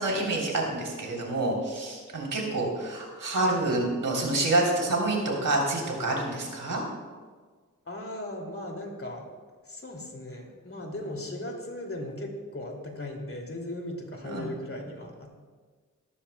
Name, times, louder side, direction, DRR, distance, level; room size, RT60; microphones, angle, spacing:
voice 1, 0.0-6.8 14.2-14.5, right 2 dB, 80° right, -1 dB, 3.3 m, -27 dB
voice 2, 7.9-9.3 9.6-15.3, left 1 dB, 45° left, 1 dB, 2.6 m, -37 dB
17.5 x 13.5 x 2.2 m, 1.5 s
wide cardioid pair, 75°, 31 cm